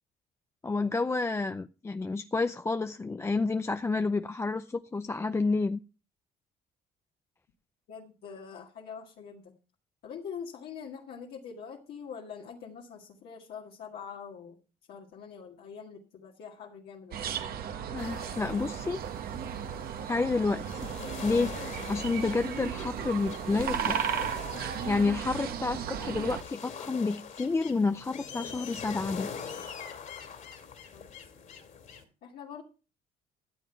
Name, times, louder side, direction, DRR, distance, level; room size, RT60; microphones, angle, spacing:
voice 1, 0.6-5.8 17.9-19.0 20.1-20.9 21.2-21.6 21.8-24.0 24.8-29.3, left 3 dB, 15° left, 0.4 m, -29 dB
voice 2, 7.9-9.5 10.0-14.6 14.9-17.4 30.9-31.0 32.2-32.6, left 6 dB, 65° left, 2.0 m, -44 dB
sound 1, 17.1-26.4, right 8 dB, 65° right, 1.4 m, -35 dB
sound 2, 18.0-32.0, left 6 dB, 50° left, 2.6 m, -44 dB
14.0 x 7.5 x 4.5 m
cardioid pair, 110°, 17 cm